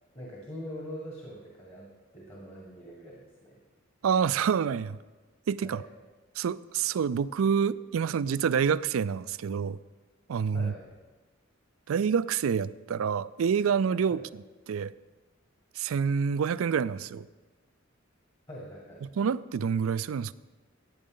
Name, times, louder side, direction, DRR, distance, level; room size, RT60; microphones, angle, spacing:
voice 1, 0.1-3.6 5.6-5.9 10.5-11.0 14.1-14.2 18.5-19.0, equal, 30° left, -4 dB, 1.9 m, -43 dB
voice 2, 4.0-5.0 5.5-5.8 6.4-9.8 10.3-10.7 11.9-14.2 14.7-14.9 15.8-17.3 19.2-20.3, right 7 dB, 80° right, 17 dB, 0.4 m, -27 dB
15.0 x 9.6 x 3.8 m, 1.3 s
head